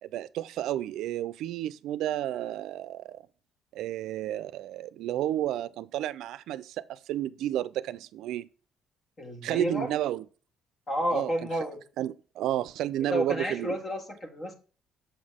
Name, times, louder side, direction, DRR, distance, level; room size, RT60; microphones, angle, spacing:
voice 1, 0.0-3.2 3.7-8.5 9.4-10.2 11.1-11.3 12.0-13.8, right 13 dB, 75° right, 0.4 m, -31 dB
voice 2, 9.2-9.9 10.9-11.8 13.1-14.5, equal, 35° left, 1.6 m, -31 dB
7.0 x 5.3 x 3.6 m
supercardioid pair, 80°, 0 cm